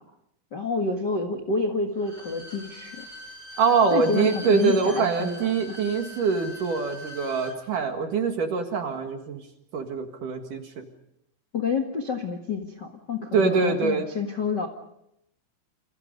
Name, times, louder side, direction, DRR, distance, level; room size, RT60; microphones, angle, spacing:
voice 1, 0.5-3.0 3.9-5.8 11.5-14.7, left 4 dB, 85° left, 4 dB, 0.9 m, -29 dB
Bowed string instrument, 1.9-7.6 7.9-8.0, left 1 dB, 30° right, 4.3 m, -42 dB
voice 2, 3.6-9.4 9.7-10.8 13.3-14.1, right 5 dB, 55° right, 5 dB, 2.9 m, -24 dB
28.5 x 27.5 x 5.3 m, 0.79 s
omnidirectional pair, 5.3 m